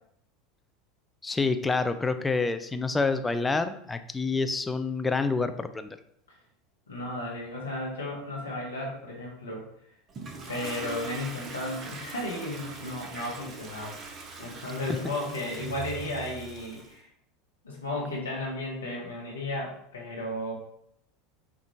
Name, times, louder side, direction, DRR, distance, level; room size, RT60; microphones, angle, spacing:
voice 1, 1.2-5.9, left 3 dB, 15° left, 9 dB, 0.3 m, -27 dB
voice 2, 6.9-9.7 10.5-14.0 14.4-17.1 17.6-20.5, left 1 dB, 75° left, -2 dB, 1.0 m, -34 dB
Toilet flush, 10.1-16.9, right 3 dB, 35° right, 0.7 m, -41 dB
4.3 x 2.5 x 3.4 m, 0.70 s
figure-of-eight pair, 80°, 0 cm